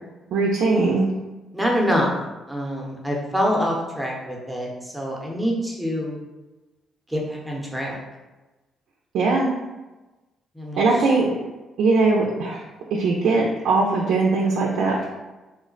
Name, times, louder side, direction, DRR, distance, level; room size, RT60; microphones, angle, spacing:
voice 1, 0.3-1.1 9.1-9.5 10.8-11.3 11.8-12.6 12.9-15.0, right 3 dB, 80° right, -2 dB, 0.4 m, -20 dB
voice 2, 1.5-2.1 2.5-6.2 7.1-8.0 10.5-10.8, equal, 5° right, -2 dB, 0.8 m, -25 dB
3.1 x 2.1 x 3.8 m, 1.1 s
cardioid pair, 90°, 0 cm